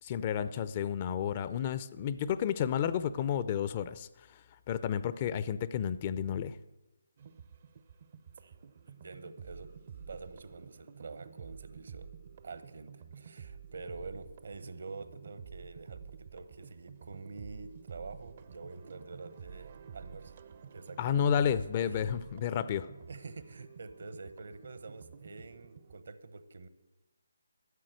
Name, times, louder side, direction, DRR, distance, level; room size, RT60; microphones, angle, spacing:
voice 1, 0.0-4.4 4.7-6.6 21.0-22.9, left 8 dB, 30° left, 14 dB, 0.5 m, -31 dB
sound 1, 7.2-26.0, right 7 dB, 40° right, 0.7 m, -50 dB
voice 2, 8.9-9.7 10.1-12.1 12.4-20.3 20.7-22.1 23.1-26.7, right 3 dB, 60° right, 12 dB, 1.0 m, -47 dB
13.0 x 7.6 x 7.7 m, 1.0 s
figure-of-eight pair, 150°, 0 cm